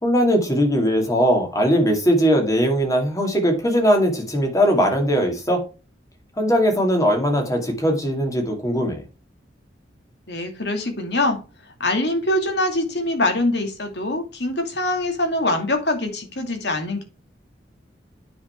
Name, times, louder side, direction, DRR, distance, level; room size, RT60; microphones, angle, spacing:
voice 1, 0.0-5.6 6.4-9.0, equal, 20° left, 2.5 m, -20 dB
voice 2, 10.3-11.4 11.8-17.0, left 1 dB, 70° left, 2.4 m, -23 dB
9.4 x 5.5 x 4.5 m
head